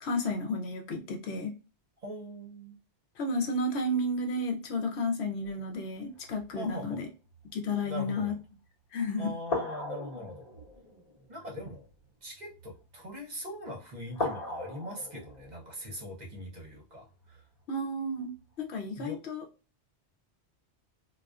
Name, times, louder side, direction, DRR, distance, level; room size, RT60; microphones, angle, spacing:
voice 1, 0.0-1.5 3.2-7.1 7.5-8.4 8.9-9.3 17.7-19.4, left 1 dB, 75° left, 0.9 m, -32 dB
voice 2, 2.0-2.8 6.5-7.0 7.8-8.3 9.2-10.5 11.3-11.9 12.2-17.4 19.0-19.2, equal, 45° right, 0.8 m, -41 dB
sound 1, 5.4-6.7 7.2-7.5 8.4-8.5 9.4-13.0 13.5-13.8 14.1-17.6 18.3-18.4, left 2 dB, 35° left, 1.1 m, -40 dB
2.3 x 2.3 x 2.3 m
omnidirectional pair, 1.1 m